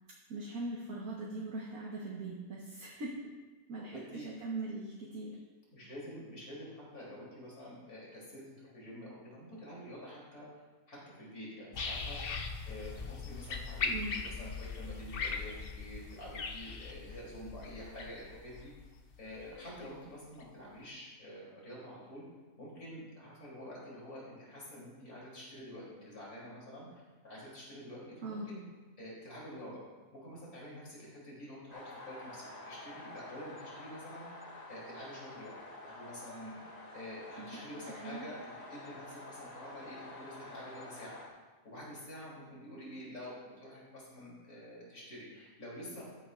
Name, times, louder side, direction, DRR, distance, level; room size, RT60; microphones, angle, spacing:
voice 1, 0.3-3.3 3.7-5.4 13.9-14.1 28.2-28.5 37.4-37.6 37.9-38.3, right 2 dB, 70° right, -4 dB, 1.7 m, -41 dB
voice 2, 3.8-4.3 5.7-10.5 10.9-12.2 12.6-18.7 19.2-22.2 22.6-28.6 29.0-29.8 30.1-34.3 34.7-36.6 36.9-41.2 41.6-46.0, equal, 75° left, -6 dB, 3.9 m, -48 dB
sound 1, 11.7-19.9 20.4-20.5, left 4 dB, 50° left, 0.8 m, -40 dB
sound 2, 31.7-41.3, left 2 dB, 30° left, 1.2 m, -49 dB
13.0 x 9.8 x 2.5 m, 1.3 s
omnidirectional pair, 1.6 m